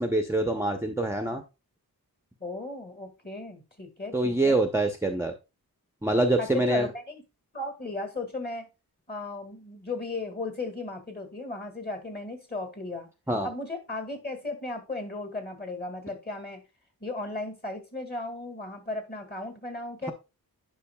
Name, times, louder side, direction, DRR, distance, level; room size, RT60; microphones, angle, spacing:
voice 1, 0.0-1.4 4.1-5.3 6.0-6.9 13.3-13.5, right 2 dB, 5° right, 4 dB, 0.7 m, -25 dB
voice 2, 2.4-4.6 6.4-7.2 7.5-8.7 9.1-13.1 13.4-16.6 17.0-20.1, left 2 dB, 25° left, 6 dB, 1.8 m, -36 dB
10.0 x 5.5 x 2.2 m, 0.27 s
wide cardioid pair, 100°, 37 cm